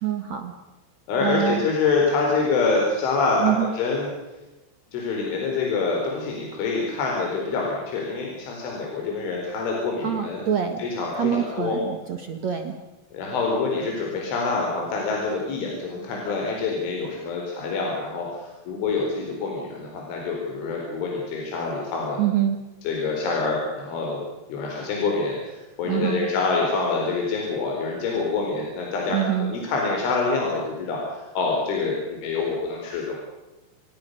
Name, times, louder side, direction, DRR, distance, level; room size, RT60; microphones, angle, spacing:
voice 1, 0.0-0.5 1.2-1.6 3.4-3.7 10.0-10.8 11.2-12.8 22.2-22.6 25.8-26.3 29.1-29.5, right 10 dB, 60° right, 6 dB, 2.0 m, -25 dB
voice 2, 1.1-4.1 4.9-10.5 10.8-11.8 13.1-22.2 22.8-24.2 24.5-33.2, left 4 dB, 80° left, -1 dB, 6.8 m, -26 dB
27.5 x 21.5 x 6.7 m, 1.1 s
omnidirectional pair, 5.5 m